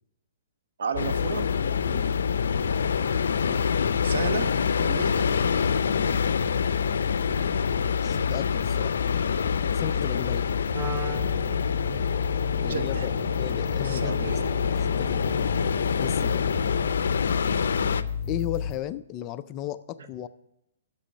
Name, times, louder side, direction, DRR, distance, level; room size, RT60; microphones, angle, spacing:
voice 1, 0.8-1.5 4.0-4.5 4.8-5.4 12.6-13.1 13.8-14.5, right 5 dB, 70° right, 8 dB, 1.1 m, -32 dB
sound 1, 0.9-18.8, left 7 dB, 45° left, 2.9 m, -31 dB
sound 2, 1.0-18.0, left 6 dB, 80° left, 0.5 m, -27 dB
voice 2, 8.0-8.9 9.7-10.5 12.6-14.3 14.7-15.2 16.0-16.4 18.3-20.3, left 12 dB, 25° left, 13 dB, 0.3 m, -35 dB
Wind instrument woodwind instrument, 10.7-17.1, right 5 dB, 30° right, 0.6 m, -41 dB
11.5 x 6.9 x 5.6 m, 0.83 s
hypercardioid pair, 165°, 0 cm